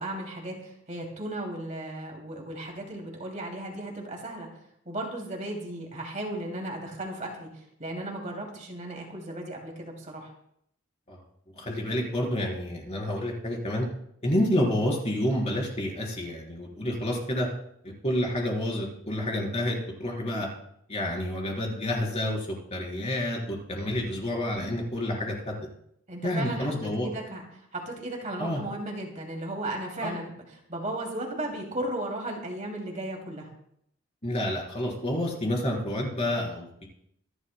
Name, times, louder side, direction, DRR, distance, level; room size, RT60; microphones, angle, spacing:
voice 1, 0.0-4.5 4.9-10.3 26.1-26.7 27.0-33.5, right 1 dB, 35° right, 0 dB, 2.6 m, -35 dB
voice 2, 11.6-13.9 14.2-17.5 18.0-20.5 20.9-25.6 26.2-27.1 28.4-28.6 30.0-30.2 34.2-36.9, left 1 dB, 30° left, -1 dB, 4.0 m, -29 dB
25.0 x 11.5 x 2.2 m, 0.72 s
head